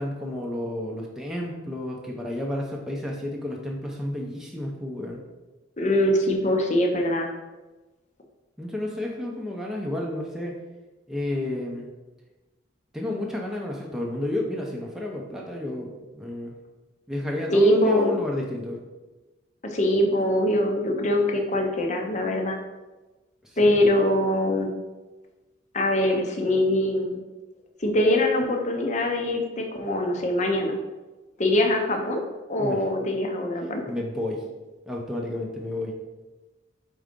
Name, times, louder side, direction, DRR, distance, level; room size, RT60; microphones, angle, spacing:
voice 1, 0.0-5.2 8.6-10.5 11.1-11.9 12.9-16.5 17.1-18.8 23.4-23.8 32.6-32.8 33.9-34.4 34.9-36.0, left 1 dB, ahead, -2 dB, 0.7 m, -31 dB
voice 2, 5.8-7.3 17.5-18.1 19.7-22.6 23.6-24.7 25.7-27.2 27.8-30.7 31.4-32.2 32.5-33.8, left 1 dB, 35° left, 3 dB, 0.8 m, -23 dB
4.7 x 3.9 x 5.2 m, 1.2 s
head